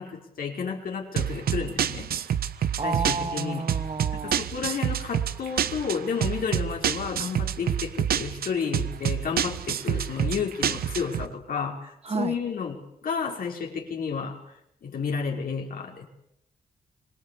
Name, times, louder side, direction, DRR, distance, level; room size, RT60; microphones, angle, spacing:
voice 1, 0.0-2.1 2.8-3.7 4.1-12.8 13.0-14.4 14.8-16.0, left 6 dB, 75° left, 1 dB, 5.0 m, -31 dB
sound 1, 1.2-11.3, right 9 dB, 85° right, 1.2 m, -28 dB
voice 2, 2.8-4.5 12.0-12.4, right 4 dB, 40° right, 7 dB, 2.4 m, -31 dB
25.5 x 21.0 x 8.5 m, 0.78 s
cardioid pair, 65°, 15 cm